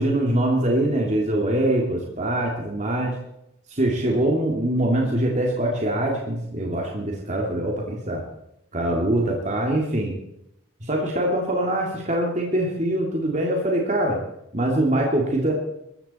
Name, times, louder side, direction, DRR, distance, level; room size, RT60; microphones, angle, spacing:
voice 1, 0.0-3.2 3.7-8.2 8.7-10.1 10.8-14.2 14.5-15.5, right 1 dB, 35° right, -1 dB, 2.8 m, -23 dB
21.0 x 15.0 x 4.4 m, 0.81 s
head